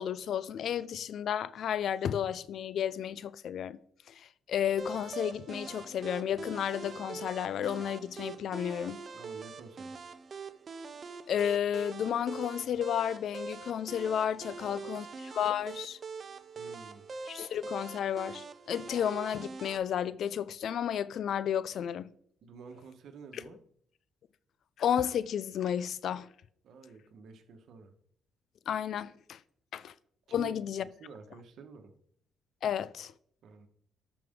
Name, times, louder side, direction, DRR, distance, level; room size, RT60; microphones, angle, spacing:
voice 1, 0.0-3.8 4.2-9.0 11.3-16.0 17.3-22.1 24.8-26.3 28.7-29.4 29.7-29.9 30.3-30.8 32.6-33.1, left 9 dB, 70° left, 0.4 m, -32 dB
sound 1, 4.8-19.8, right 4 dB, 45° right, 0.7 m, -44 dB
voice 2, 9.1-10.0 14.7-14.8 16.5-17.1 22.4-23.6 26.6-27.9 30.3-31.9 33.4-33.7, right 5 dB, 70° right, 1.3 m, -50 dB
12.5 x 5.1 x 3.7 m
cardioid pair, 90°, 0 cm